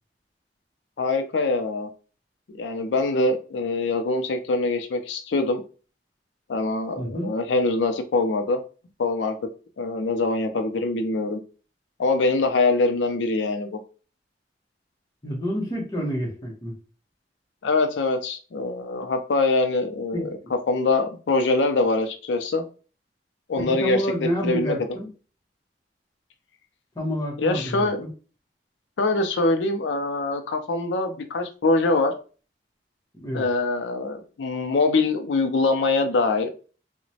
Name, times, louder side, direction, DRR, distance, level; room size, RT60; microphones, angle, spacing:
voice 1, 1.0-1.9 2.5-5.6 6.5-8.6 9.0-9.4 9.8-11.4 12.0-13.8 17.6-20.4 20.7-22.7 23.5-24.8 27.4-28.0 29.0-32.1 33.3-36.5, left 3 dB, 85° left, 7 dB, 0.4 m, -23 dB
voice 2, 7.0-7.3 15.2-16.7 20.1-20.5 23.6-25.1 26.9-28.1 33.1-33.5, equal, 20° left, -2 dB, 0.8 m, -29 dB
2.9 x 2.1 x 2.7 m, 0.37 s
head